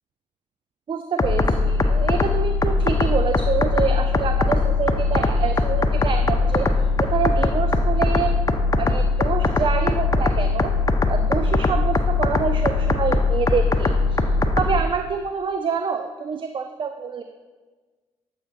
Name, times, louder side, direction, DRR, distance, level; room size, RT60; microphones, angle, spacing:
voice 1, 0.9-6.7 7.0-8.3 8.8-10.7 11.1-14.2 14.6-17.2, right 6 dB, 40° right, 7 dB, 0.4 m, -26 dB
sound 1, 1.2-14.8, left 3 dB, 25° left, 0.5 m, -21 dB
7.5 x 5.3 x 2.5 m, 1.3 s
supercardioid pair, 55°, 13 cm